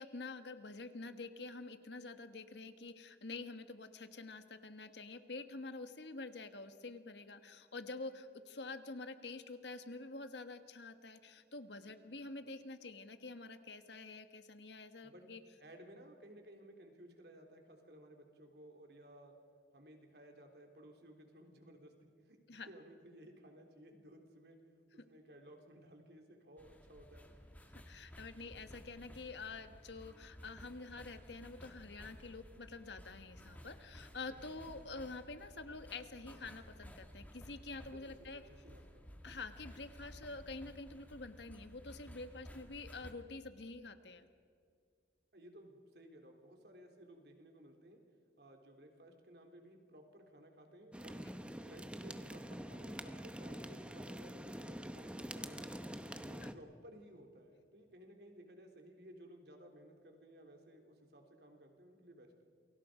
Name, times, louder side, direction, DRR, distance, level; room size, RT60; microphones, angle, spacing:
voice 1, 0.0-15.4 22.5-22.7 27.9-38.4 39.2-44.2 56.1-56.5, left 3 dB, 80° left, 9 dB, 1.5 m, -48 dB
voice 2, 15.6-19.3 19.7-21.9 22.2-24.6 24.9-27.3 34.5-34.6 37.9-39.1 45.3-48.0 48.4-51.3 51.6-55.9 56.2-62.4, right 1 dB, 65° right, 3 dB, 3.5 m, -57 dB
sound 1, 26.6-43.1, equal, 10° left, 2.0 m, -55 dB
sound 2, 50.9-56.5, equal, 5° right, 0.9 m, -46 dB
28.5 x 23.0 x 5.1 m, 2.2 s
head